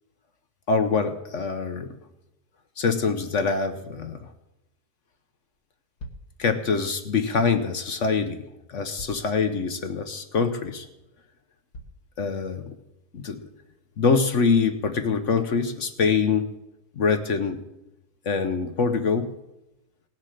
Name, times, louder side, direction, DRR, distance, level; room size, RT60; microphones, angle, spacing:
voice 1, 0.7-1.9 2.8-4.3 6.4-10.9 12.2-12.8 13.1-13.5 14.0-16.6 16.9-17.6 18.2-19.3, left 5 dB, 55° left, 8 dB, 1.0 m, -24 dB
sound 1, 5.5-5.6 6.0-6.3 7.9-8.0 9.0-9.3 9.9-10.0 10.6-10.7 11.7-12.1, equal, 70° left, 1.8 m, -42 dB
18.0 x 7.6 x 6.4 m, 0.93 s
omnidirectional pair, 1.8 m